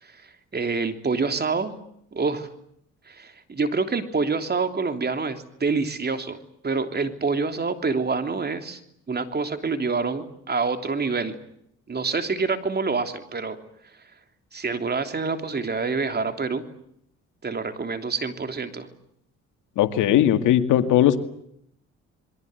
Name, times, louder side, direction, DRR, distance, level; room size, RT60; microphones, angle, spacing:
voice 1, 0.0-1.7 2.1-2.5 3.1-6.4 6.6-8.8 9.1-11.4 11.9-13.6 14.5-16.6 17.4-18.9, right 4 dB, 35° right, 7 dB, 3.3 m, -27 dB
voice 2, 19.8-21.2, left 11 dB, 90° left, 8 dB, 2.3 m, -18 dB
28.0 x 23.0 x 8.0 m, 0.72 s
cardioid pair, 90°, 30 cm